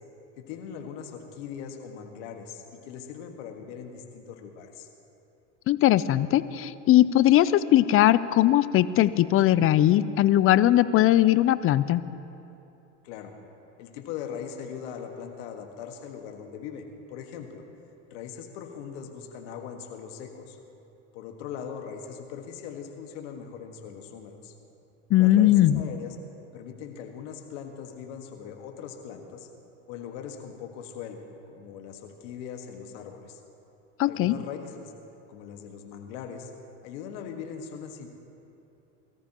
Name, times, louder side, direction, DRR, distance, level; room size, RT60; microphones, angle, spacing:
voice 1, 0.4-4.9 13.0-13.3 13.8-17.6 18.1-20.6 21.1-24.6 25.2-26.2 26.5-29.5 29.9-33.4 34.0-34.9 35.3-36.5 36.8-38.1, left 7 dB, 70° left, 4 dB, 1.7 m, -40 dB
voice 2, 5.7-12.0 25.1-25.9 34.0-34.4, left 13 dB, 35° left, 16 dB, 0.5 m, -20 dB
22.0 x 13.5 x 3.0 m, 2.8 s
hypercardioid pair, 95°, 37 cm